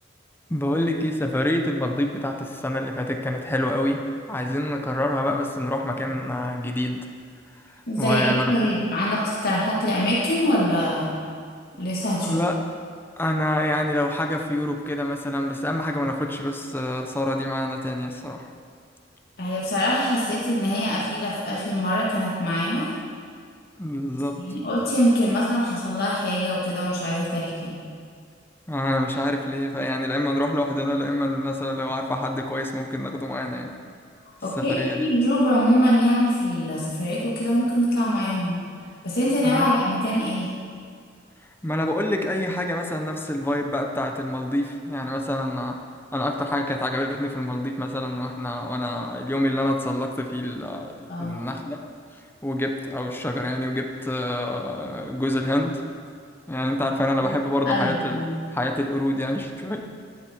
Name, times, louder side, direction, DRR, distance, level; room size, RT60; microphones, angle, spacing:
voice 1, 0.5-7.1 7.6-8.5 12.2-12.6 13.2-18.5 23.8-24.4 28.7-33.7 34.6-35.1 39.4-39.7 41.6-45.8 46.1-51.8 52.4-55.8 56.5-58.2 58.5-59.8, left 1 dB, 10° left, 3 dB, 0.9 m, -26 dB
voice 2, 7.9-11.1 11.8-12.4 19.4-22.9 24.4-27.8 34.4-38.6 39.0-40.5 51.1-51.4 57.2-57.4 57.7-58.4, equal, 55° left, -6 dB, 2.1 m, -23 dB
13.0 x 11.5 x 4.5 m, 2.2 s
head